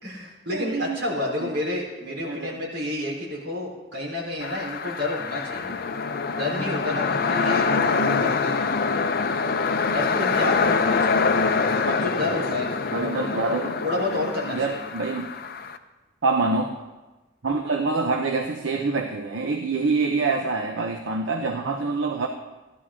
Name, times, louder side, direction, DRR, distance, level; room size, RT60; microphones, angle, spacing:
voice 1, 0.0-5.8 6.3-9.0 9.8-11.3 11.9-14.8, left 2 dB, 70° right, -3 dB, 4.0 m, -30 dB
voice 2, 0.5-1.0 1.4-1.5 2.2-2.6 12.9-13.7 14.5-15.3 16.2-16.7 17.4-22.3, right 3 dB, 85° right, 3 dB, 0.8 m, -26 dB
sound 1, 4.4-15.8, left 4 dB, 50° left, 0.6 m, -25 dB
15.0 x 12.0 x 3.8 m, 1.1 s
head